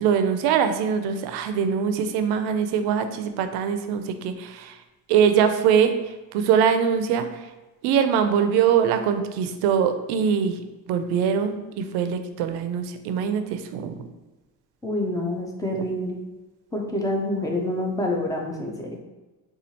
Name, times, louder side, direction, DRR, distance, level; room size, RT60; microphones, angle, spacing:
voice 1, 0.0-4.7 5.1-5.9 6.3-7.3 7.8-10.6 10.9-14.0 15.7-15.8, right 7 dB, 75° right, 8 dB, 0.5 m, -22 dB
voice 2, 14.8-16.2 16.7-19.0, left 1 dB, 10° left, 0 dB, 0.3 m, -27 dB
4.3 x 2.4 x 2.8 m, 1.1 s
cardioid pair, 135°, 39 cm